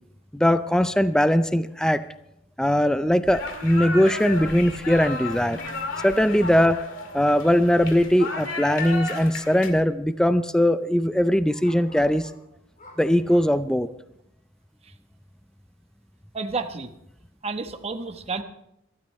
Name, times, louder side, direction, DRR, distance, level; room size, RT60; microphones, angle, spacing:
voice 1, 0.3-2.0 2.6-6.8 7.1-12.3 13.0-13.9, equal, 5° left, 12 dB, 0.4 m, -20 dB
sound 1, 3.3-9.7, left 3 dB, 65° left, 2.2 m, -34 dB
sound 2, 5.4-6.2 8.1-8.2 8.6-8.7 9.3-9.5 9.8-9.9 11.6-13.5, left 2 dB, 40° left, 2.9 m, -50 dB
voice 2, 16.3-16.9 17.4-18.4, right 4 dB, 30° right, 7 dB, 1.0 m, -31 dB
24.5 x 12.5 x 3.2 m, 0.80 s
head